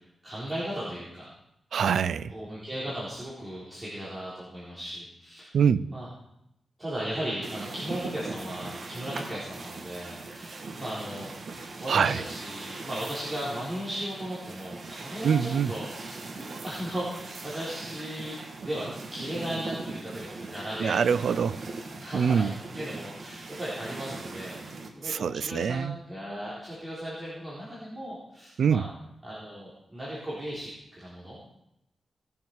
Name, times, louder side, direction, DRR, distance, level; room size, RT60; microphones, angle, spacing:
voice 1, 0.2-1.3 2.3-5.5 5.9-6.1 6.8-11.3 11.8-18.4 18.6-21.4 22.0-24.6 25.0-28.9 29.2-30.7 31.0-31.4, equal, 15° right, -9 dB, 3.8 m, -36 dB
voice 2, 1.7-2.3 5.5-5.9 11.9-12.2 15.2-15.7 20.8-21.6 22.1-22.5 25.0-25.9 28.6-28.9, right 7 dB, 85° right, 16 dB, 0.4 m, -24 dB
sound 1, 7.4-24.9, right 3 dB, 50° right, 1.8 m, -40 dB
18.5 x 7.2 x 4.8 m, 0.82 s
wide cardioid pair, 135°, 0 cm